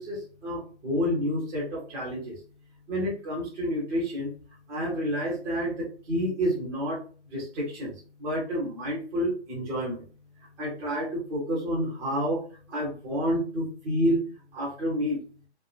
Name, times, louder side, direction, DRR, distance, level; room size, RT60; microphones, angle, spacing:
voice 1, 0.0-2.4 2.9-4.3 4.7-7.0 7.3-10.0 10.6-12.4 12.7-14.2 14.5-15.2, equal, 10° right, -6 dB, 0.5 m, -29 dB
3.0 x 2.0 x 2.3 m, 0.39 s
hypercardioid pair, 140°, 34 cm